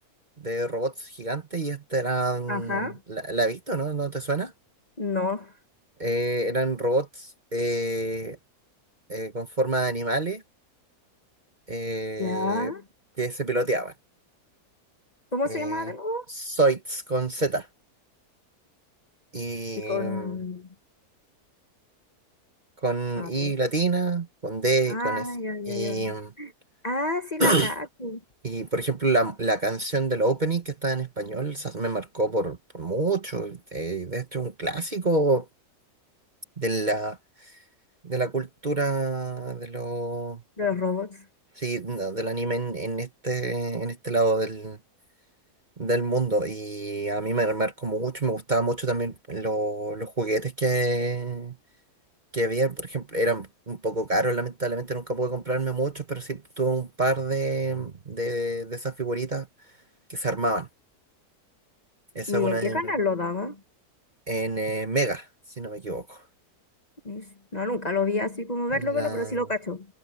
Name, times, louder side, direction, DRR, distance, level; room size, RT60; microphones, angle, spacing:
voice 1, 0.4-4.5 6.0-8.4 9.1-10.4 11.7-12.7 13.2-13.9 15.5-15.9 16.3-17.7 19.3-20.4 22.8-25.3 25.7-26.3 27.4-27.7 28.4-35.5 36.6-37.5 38.0-40.4 41.6-44.8 45.8-51.6 52.3-59.5 60.1-60.7 62.1-62.9 64.3-65.3 65.6-66.2 68.7-69.4, right 2 dB, 30° right, 1.3 m, -27 dB
voice 2, 2.5-3.0 5.0-5.5 12.2-12.8 15.3-16.2 19.9-20.7 23.2-23.5 24.9-26.5 26.8-28.2 40.6-41.2 62.3-63.6 67.0-69.9, left 3 dB, 30° left, 1.3 m, -29 dB
omnidirectional pair, 1.7 m